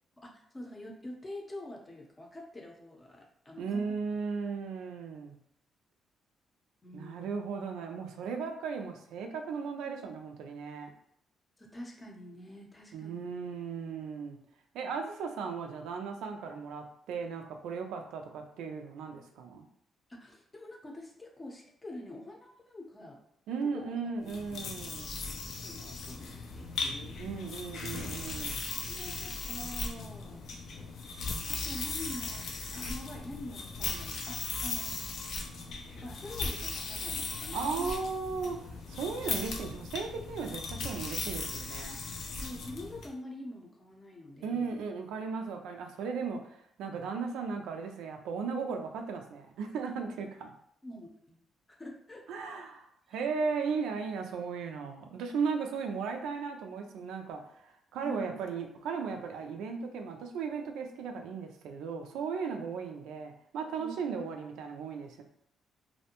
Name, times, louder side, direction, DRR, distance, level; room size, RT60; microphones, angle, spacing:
voice 1, 0.2-3.9 6.8-7.3 11.6-13.3 20.1-23.2 23.6-24.4 25.3-27.3 28.9-30.4 31.5-34.9 36.0-38.0 42.4-44.8 50.8-51.4 51.8-52.4 53.1-53.2 58.0-58.3 63.8-63.9, left 1 dB, 20° left, 0 dB, 0.6 m, -45 dB
voice 2, 3.6-5.3 6.9-10.9 12.9-14.4 14.7-19.7 23.5-25.1 27.2-28.7 37.5-42.0 44.4-50.5 52.3-52.8 53.1-65.2, right 5 dB, 85° right, 4 dB, 0.3 m, -36 dB
sound 1, 24.2-43.1, left 4 dB, 70° left, 0.4 m, -38 dB
2.5 x 2.1 x 2.8 m, 0.69 s
cardioid pair, 90°, 0 cm